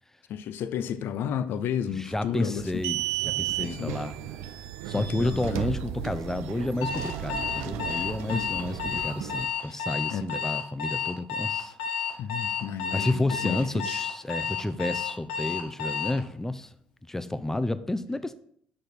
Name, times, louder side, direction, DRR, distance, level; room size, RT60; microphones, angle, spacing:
voice 1, 0.3-2.8 3.5-4.0 4.9-5.8 8.3-8.5 8.8-9.0 9.6-10.3 12.2-14.0, left 8 dB, 60° left, 0.6 m, -33 dB
voice 2, 1.9-4.2 4.9-11.7 12.9-16.7 17.1-18.3, left 2 dB, 10° left, 0.7 m, -31 dB
sound 1, 2.6-9.5, right 11 dB, 70° right, 0.5 m, -34 dB
Alarm, 6.8-16.2, left 6 dB, 75° left, 1.3 m, -31 dB
8.6 x 6.4 x 4.4 m
hypercardioid pair, 55°, 4 cm